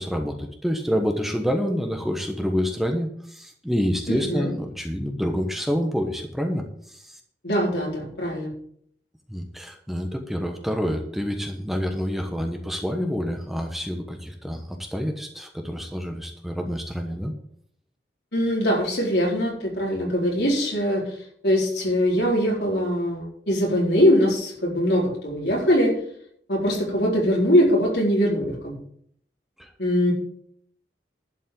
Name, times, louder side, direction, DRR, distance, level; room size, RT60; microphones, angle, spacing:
voice 1, 0.0-7.2 9.3-17.3 29.6-29.7, equal, ahead, 3 dB, 1.1 m, -27 dB
voice 2, 4.1-4.5 7.4-8.5 18.3-21.0 21.4-25.9 26.5-28.7 29.8-30.1, equal, 70° left, -2 dB, 4.3 m, -22 dB
11.5 x 5.3 x 8.6 m, 0.65 s
head